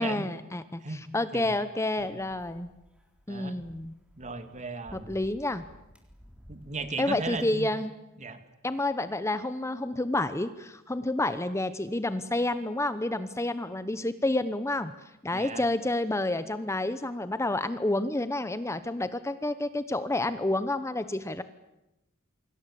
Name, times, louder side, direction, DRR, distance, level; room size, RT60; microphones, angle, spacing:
voice 1, 0.0-2.7 3.3-3.9 4.9-5.6 7.0-7.9 8.6-14.9 15.2-21.4, left 2 dB, 15° left, 12 dB, 0.9 m, -29 dB
sound 1, 2.0-7.4, equal, 5° right, 4.0 m, -55 dB
voice 2, 4.2-5.2 6.5-7.7 8.2-8.4 15.3-15.6, right 3 dB, 35° right, 10 dB, 2.4 m, -36 dB
28.0 x 24.5 x 8.5 m, 0.91 s
head